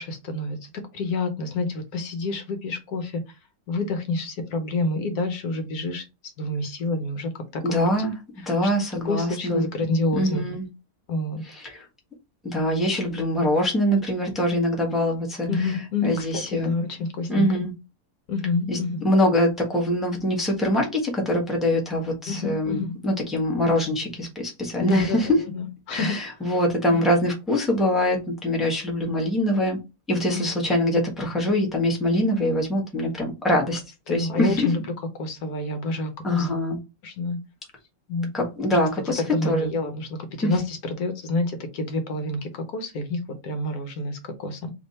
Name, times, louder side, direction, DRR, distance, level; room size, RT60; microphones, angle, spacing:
voice 1, 0.0-3.4 3.7-6.0 6.4-7.7 8.6-8.7 9.0-10.4 11.1-11.4 15.5-17.5 18.3-19.1 22.3-23.0 24.8-26.2 26.8-27.0 30.3-30.4 34.1-34.9 35.2-36.5 37.0-37.4 38.1-38.3 38.7-44.7, left 2 dB, 70° left, 1.2 m, -28 dB
voice 2, 7.6-8.1 8.5-9.6 10.1-10.6 11.6-11.8 12.4-15.5 16.0-16.7 17.3-17.7 18.7-18.8 19.0-25.3 25.9-29.8 30.1-33.8 34.1-34.7 36.2-36.8 38.3-39.7 40.4-40.5, left 1 dB, ahead, 1.1 m, -23 dB
3.4 x 3.0 x 4.1 m
omnidirectional pair, 1.7 m